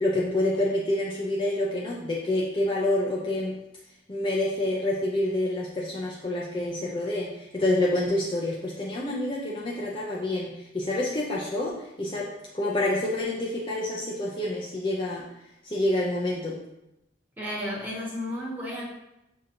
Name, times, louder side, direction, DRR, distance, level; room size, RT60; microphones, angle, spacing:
voice 1, 0.0-3.6 4.1-15.2 15.6-16.6, left 1 dB, 25° left, -4 dB, 0.4 m, -27 dB
voice 2, 17.4-18.9, left 1 dB, 10° right, -6 dB, 1.0 m, -33 dB
6.3 x 2.8 x 2.6 m, 0.89 s
head